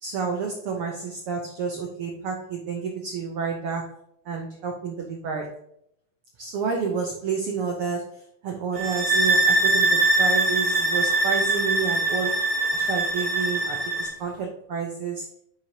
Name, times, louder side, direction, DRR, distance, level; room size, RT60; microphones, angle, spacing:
voice 1, 0.0-3.9 4.2-5.6 6.4-15.2, right 5 dB, 75° right, 1 dB, 1.2 m, -30 dB
sound 1, 8.8-14.1, right 2 dB, 45° right, 1.5 m, -22 dB
8.7 x 4.9 x 2.8 m, 0.72 s
omnidirectional pair, 3.7 m